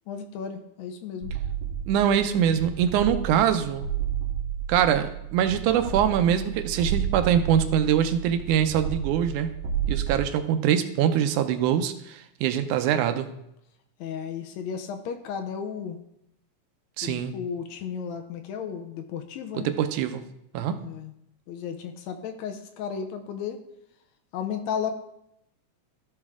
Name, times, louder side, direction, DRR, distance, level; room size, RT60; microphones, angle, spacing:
voice 1, 0.1-1.3 14.0-16.0 17.0-19.7 20.8-21.1 21.5-23.6 24.3-24.9, left 7 dB, 75° left, 6 dB, 1.9 m, -34 dB
sound 1, 1.2-10.2, right 8 dB, 60° right, 2.0 m, -32 dB
voice 2, 1.9-3.9 4.7-9.5 9.9-13.3 17.0-17.3 19.5-20.2 20.5-20.8, right 9 dB, 85° right, 9 dB, 2.1 m, -23 dB
13.0 x 5.3 x 3.6 m, 0.79 s
omnidirectional pair, 3.4 m